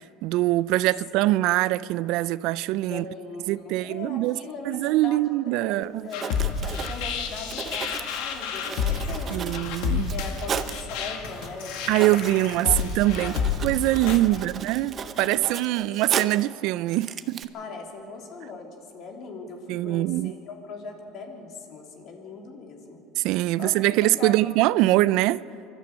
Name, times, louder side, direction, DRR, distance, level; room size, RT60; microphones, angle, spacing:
voice 1, 0.0-3.0 3.5-4.4 4.6-6.1 9.3-10.1 11.9-12.7 13.0-13.4 13.6-17.5 19.7-20.3 23.2-25.4, right 17 dB, 65° right, 0.4 m, -23 dB
voice 2, 2.9-6.3 6.6-9.6 10.1-12.8 13.1-13.5 14.3-16.4 17.5-23.0 23.6-23.7 24.0-24.5, left 4 dB, 50° left, 3.2 m, -40 dB
Writing, 5.8-5.9 6.1-10.9 11.4-11.5 11.8-16.5 16.9-17.4, right 7 dB, 30° right, 0.7 m, -36 dB
sound 1, 6.1-14.2, left 6 dB, 75° left, 1.9 m, -30 dB
24.5 x 12.5 x 8.3 m
cardioid pair, 140°, 0 cm